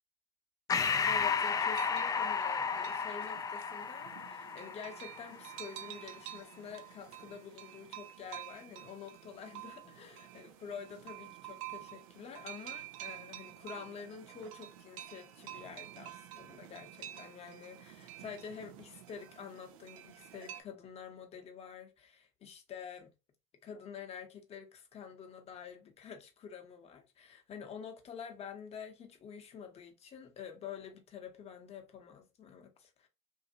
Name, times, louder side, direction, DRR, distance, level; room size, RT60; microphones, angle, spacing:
Breathing, 0.7-5.6, left 6 dB, 20° left, 0.3 m, -33 dB
voice 1, 1.1-23.1 23.6-33.1, left 6 dB, 35° left, 0.8 m, -48 dB
sound 1, 1.3-20.6, right 13 dB, 70° right, 0.4 m, -49 dB
2.6 x 2.5 x 2.6 m
hypercardioid pair, 85°, 18 cm